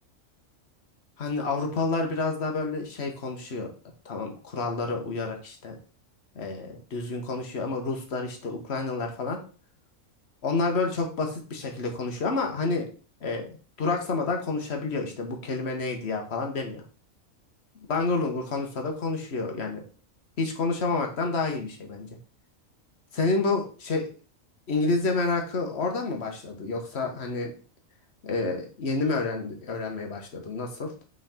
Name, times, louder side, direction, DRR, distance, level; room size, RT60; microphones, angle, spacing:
voice 1, 1.2-3.7 4.0-5.8 6.3-9.4 10.4-12.8 13.2-13.5 13.8-16.8 17.9-19.8 20.4-22.1 23.1-24.1 24.7-27.5 28.2-30.9, left 3 dB, 50° left, 3 dB, 1.4 m, -29 dB
5.7 x 3.9 x 4.3 m, 0.38 s
omnidirectional pair, 1.4 m